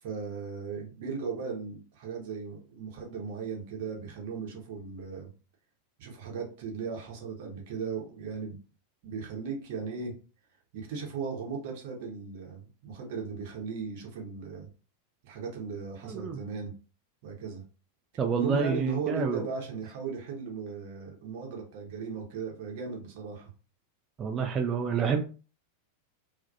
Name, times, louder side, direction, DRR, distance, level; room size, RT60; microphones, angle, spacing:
voice 1, 0.0-5.3 6.0-8.6 9.0-10.1 10.7-14.7 15.2-16.7 17.2-17.6 18.3-23.5, right 5 dB, 50° right, -1 dB, 0.8 m, -37 dB
voice 2, 16.0-16.4 18.2-19.5 24.2-25.2, right 6 dB, 25° right, 3 dB, 0.3 m, -28 dB
2.3 x 2.1 x 2.6 m, 0.35 s
figure-of-eight pair, 90°, 0 cm